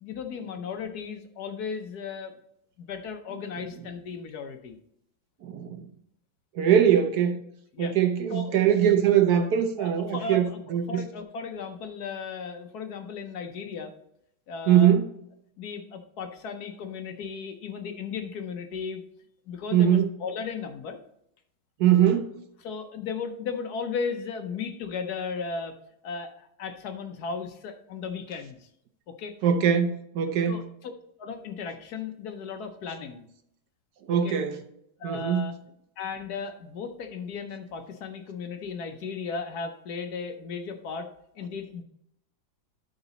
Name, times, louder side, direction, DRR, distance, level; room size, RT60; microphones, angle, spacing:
voice 1, 0.0-2.3 2.8-4.8 7.7-7.9 8.3-8.6 9.4-9.5 9.8-14.0 14.5-14.9 15.6-19.0 19.5-21.0 22.6-25.7 26.0-28.7 29.1-29.3 30.5-30.9 31.2-33.3 34.1-34.4 35.0-35.6 36.0-41.1 41.4-41.8, left 5 dB, 65° left, 6 dB, 1.0 m, -36 dB
voice 2, 5.4-5.9 6.5-7.4 7.8-11.0 14.7-15.1 19.7-20.1 21.8-22.4 29.4-30.7 34.1-34.6 35.0-35.5, right 9 dB, 65° right, 7 dB, 1.0 m, -22 dB
12.0 x 4.0 x 4.0 m, 0.74 s
omnidirectional pair, 2.2 m